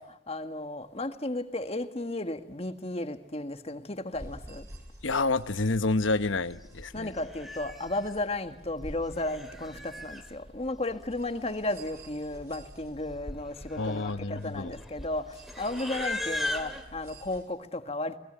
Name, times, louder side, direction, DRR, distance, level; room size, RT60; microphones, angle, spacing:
voice 1, 0.0-4.7 6.9-18.2, left 2 dB, 30° left, 1.5 m, -34 dB
sound 1, 4.1-17.4, right 1 dB, 15° right, 5.8 m, -48 dB
voice 2, 5.0-7.1 13.8-14.7, left 3 dB, 85° left, 1.0 m, -28 dB
Livestock farm animals working animals, 6.6-6.8 7.1-8.1 9.0-10.3 11.3-11.4 11.6-12.0 12.3-12.6 13.2-16.8, left 1 dB, ahead, 2.4 m, -38 dB
29.0 x 20.0 x 10.0 m
head